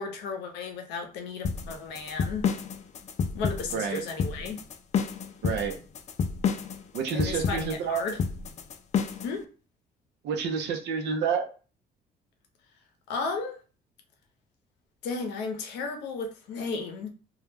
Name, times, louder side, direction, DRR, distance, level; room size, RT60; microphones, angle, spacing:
voice 1, 0.0-2.5 3.3-4.6 7.1-8.2 9.2-9.5 13.1-13.6 15.0-17.1, left 4 dB, 85° left, 0.6 m, -34 dB
sound 1, 1.4-9.3, left 6 dB, 40° left, 0.4 m, -29 dB
voice 2, 3.7-4.0 5.4-5.8 6.9-8.0 10.2-11.5, right 6 dB, 75° right, 0.6 m, -29 dB
2.3 x 2.1 x 3.2 m
cardioid pair, 90°, 18 cm